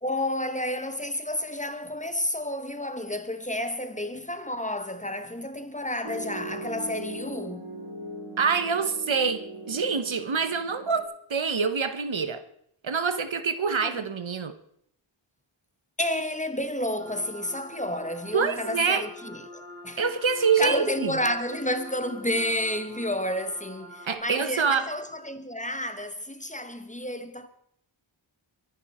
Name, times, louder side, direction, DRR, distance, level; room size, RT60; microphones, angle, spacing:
voice 1, 0.0-7.7 13.6-13.9 16.0-20.0 20.6-27.5, left 1 dB, 15° left, 1.3 m, -31 dB
Piano, 6.0-11.0, right 1 dB, 50° right, 5.6 m, -39 dB
voice 2, 8.4-12.4 12.8-14.5 18.3-19.0 20.0-21.2 24.0-24.8, right 5 dB, 70° right, 1.2 m, -26 dB
sound 1, 17.0-24.2, equal, 30° right, 5.6 m, -45 dB
23.0 x 11.0 x 4.4 m
wide cardioid pair, 65°, 47 cm